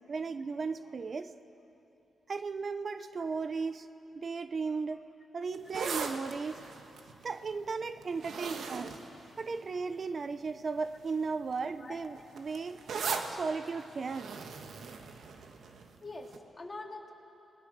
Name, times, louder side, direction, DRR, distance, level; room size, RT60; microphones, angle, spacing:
voice 1, 0.0-1.3 2.3-3.9 4.1-5.0 5.3-6.6 7.2-9.0 9.4-12.8 13.3-14.3, right 4 dB, 50° right, 11 dB, 0.7 m, -36 dB
sound 1, 5.5-10.0 10.7-11.0 11.3-15.9 16.3-16.4, right 5 dB, 80° right, 1.6 m, -39 dB
voice 2, 12.7-13.0 16.0-17.1, left 2 dB, 30° left, 1 dB, 2.9 m, -45 dB
28.5 x 20.0 x 6.6 m, 2.8 s
cardioid pair, 80°, 0 cm